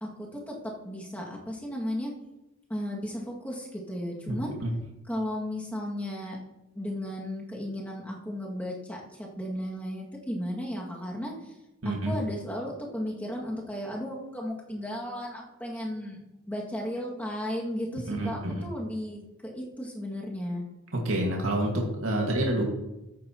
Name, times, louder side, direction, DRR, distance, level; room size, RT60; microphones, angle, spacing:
voice 1, 0.0-2.1 2.7-4.5 5.1-6.4 6.8-11.5 11.8-16.2 16.5-20.6, equal, 10° left, -3 dB, 2.1 m, -35 dB
voice 2, 11.8-12.1 18.1-18.7 20.9-22.6, right 1 dB, 85° right, -1 dB, 1.9 m, -28 dB
14.0 x 9.4 x 3.0 m, 0.97 s
head